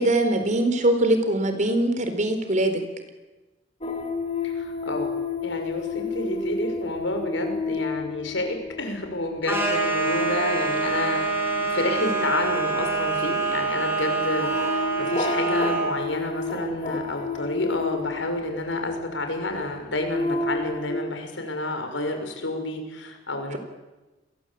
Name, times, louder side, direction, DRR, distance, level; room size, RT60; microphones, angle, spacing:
voice 1, 0.0-2.8 23.5-23.6, right 1 dB, 40° right, 8 dB, 4.1 m, -22 dB
sound 1, 3.8-18.9 19.6-20.9, left 3 dB, 35° left, 4.0 m, -31 dB
voice 2, 4.4-5.1 5.4-11.3 11.5-23.6, left 2 dB, 80° left, 5 dB, 6.1 m, -29 dB
sound 2, 9.4-16.0, right 3 dB, 10° right, 7.0 m, -26 dB
29.5 x 22.5 x 8.5 m, 1.1 s
head